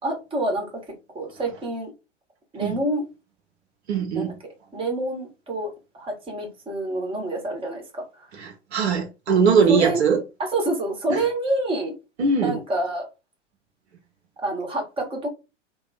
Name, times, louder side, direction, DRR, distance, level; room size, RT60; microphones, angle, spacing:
voice 1, 0.0-0.7 1.1-1.9 2.5-3.1 4.1-4.3 4.7-5.7 5.9-8.4 9.7-10.0 10.4-11.9 12.4-13.1 14.4-15.3, right 1 dB, 15° right, 1.2 m, -27 dB
voice 2, 3.9-4.3 8.4-10.2 11.1-11.2 12.2-12.6, right 5 dB, 60° right, 0.9 m, -21 dB
2.8 x 2.3 x 4.0 m
figure-of-eight pair, 95°, 36 cm